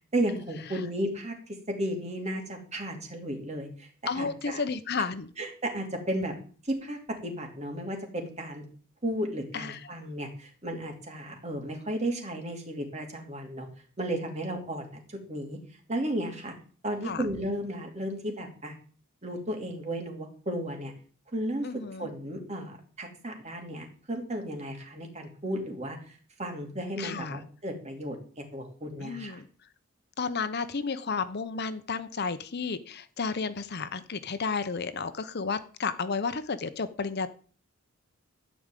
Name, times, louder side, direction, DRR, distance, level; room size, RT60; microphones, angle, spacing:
voice 1, 0.1-1.3 1.7-3.9 4.1-4.6 5.4-6.3 6.6-8.6 9.0-13.7 14.0-15.6 15.9-16.5 16.8-18.7 19.2-20.9 21.3-21.7 22.0-26.0 26.4-29.4, right 1 dB, 35° right, 3 dB, 3.0 m, -34 dB
voice 2, 4.1-5.3 9.5-9.9 17.0-17.2 21.6-22.1 27.0-27.4 29.0-29.5 30.2-37.3, left 5 dB, 50° left, 12 dB, 0.8 m, -32 dB
13.5 x 5.1 x 9.1 m, 0.43 s
head